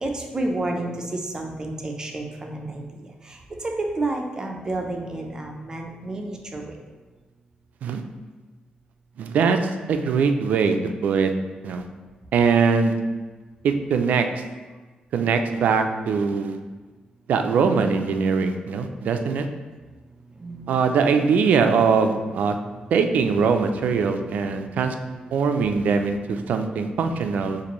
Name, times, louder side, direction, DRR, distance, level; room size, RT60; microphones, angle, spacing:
voice 1, 0.0-2.8 3.3-3.4 3.6-6.7 20.4-20.8, right 2 dB, 25° right, 2 dB, 0.6 m, -30 dB
voice 2, 9.2-11.3 11.6-11.8 12.3-13.0 13.6-14.2 15.1-16.6 17.3-19.5 20.7-22.6 22.9-25.0 25.3-27.6, right 5 dB, 75° right, 6 dB, 0.4 m, -22 dB
6.8 x 2.6 x 3.0 m, 1.3 s
cardioid pair, 125°, 3 cm